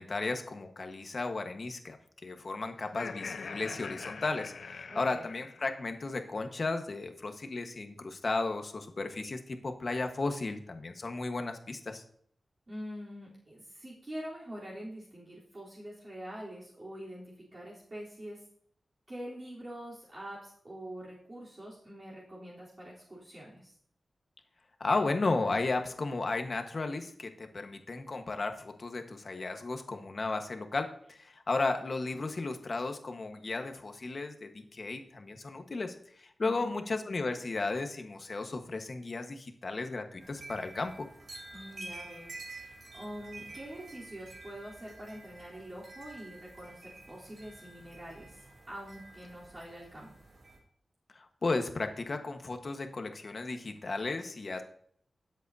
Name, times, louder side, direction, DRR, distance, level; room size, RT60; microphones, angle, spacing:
voice 1, 0.0-2.0 2.2-12.0 24.8-41.1 51.1-54.6, left 3 dB, 50° left, 6 dB, 1.3 m, -34 dB
Laughter, 2.8-6.0, left 5 dB, 85° left, 0.7 m, -43 dB
voice 2, 4.9-5.3 12.7-18.4 19.1-23.7 36.4-36.7 41.5-50.1, equal, 35° right, -7 dB, 3.6 m, -45 dB
sound 1, 40.2-50.6, right 2 dB, 65° right, 3.7 m, -49 dB
18.5 x 8.1 x 2.8 m, 0.64 s
wide cardioid pair, 120°, 0 cm